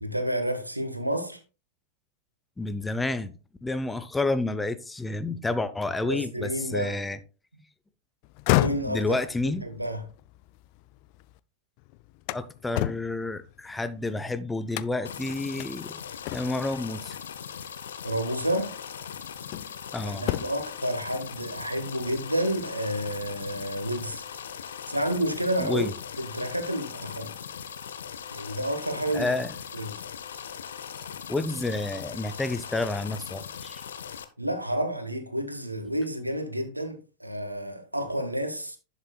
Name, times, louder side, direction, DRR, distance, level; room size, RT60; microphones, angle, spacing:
voice 1, 0.0-1.4 6.0-7.0 8.5-9.1 9.6-10.0 18.0-18.7 20.1-24.2 24.9-25.8 26.2-27.3 28.3-29.3 29.7-30.0 34.4-38.8, right 1 dB, 85° right, 1.2 m, -30 dB
voice 2, 2.6-3.3 3.6-7.2 8.9-9.7 12.3-16.0 16.3-17.2 19.9-20.3 25.6-25.9 29.1-29.5 31.3-33.8, left 2 dB, 10° left, 0.6 m, -30 dB
sound 1, 8.2-11.4 11.8-14.2 14.7-15.2 15.6-15.7 16.2-16.8 18.0-18.1 18.7-19.8 20.2-20.8, left 19 dB, 45° left, 0.4 m, -31 dB
sound 2, 15.0-34.2, left 8 dB, 65° left, 0.8 m, -40 dB
11.0 x 7.3 x 2.3 m
figure-of-eight pair, 90°, 0 cm